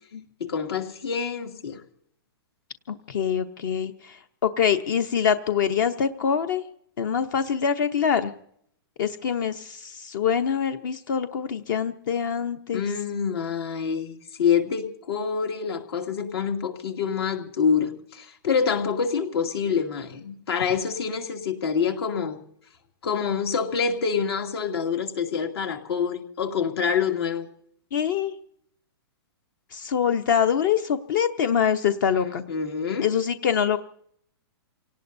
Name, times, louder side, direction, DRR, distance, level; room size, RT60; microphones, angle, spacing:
voice 1, 0.4-1.8 12.7-22.4 23.0-27.5 32.1-33.1, left 6 dB, 70° left, 4 dB, 2.5 m, -26 dB
voice 2, 2.9-6.6 7.0-8.3 9.0-12.8 27.9-28.3 29.7-32.4 33.0-33.8, left 7 dB, 50° left, 11 dB, 0.9 m, -24 dB
29.0 x 18.0 x 2.7 m, 0.68 s
hypercardioid pair, 160°, 13 cm